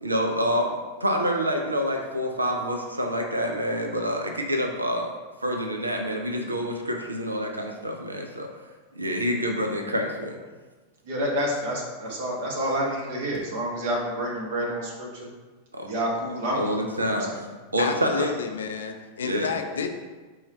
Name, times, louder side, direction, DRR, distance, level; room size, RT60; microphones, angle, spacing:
voice 1, 0.0-8.5 8.9-10.4 15.7-15.9 16.6-17.3 17.7-18.3 19.2-19.5, equal, 80° right, 2 dB, 0.4 m, -27 dB
voice 2, 11.0-15.3 15.8-16.8 17.1-17.4, equal, 50° right, -2 dB, 1.1 m, -29 dB
voice 3, 17.8-19.9, left 6 dB, 65° left, 6 dB, 0.4 m, -30 dB
4.2 x 2.3 x 4.1 m, 1.3 s
figure-of-eight pair, 90°, 0 cm